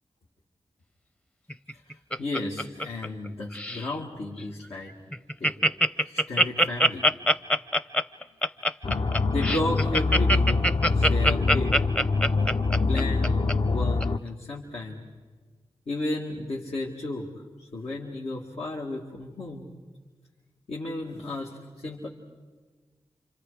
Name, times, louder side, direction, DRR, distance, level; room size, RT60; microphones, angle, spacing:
Laughter, 1.5-3.3 3.5-3.9 4.4-4.5 4.7-4.8 5.1-13.5 14.0-14.1, equal, 10° left, 0.6 m, -23 dB
voice 1, 1.7-4.9 5.4-5.6 6.0-7.1 8.8-8.9 9.3-10.6 10.9-11.8 12.9-13.4 13.7-15.0 15.9-17.3 17.6-19.7 20.7-22.1, left 2 dB, 85° left, -5 dB, 2.3 m, -33 dB
sound 1, 8.8-14.2, left 3 dB, 50° left, 0.6 m, -24 dB
29.0 x 26.5 x 5.0 m, 1.4 s
wide cardioid pair, 60°, 11 cm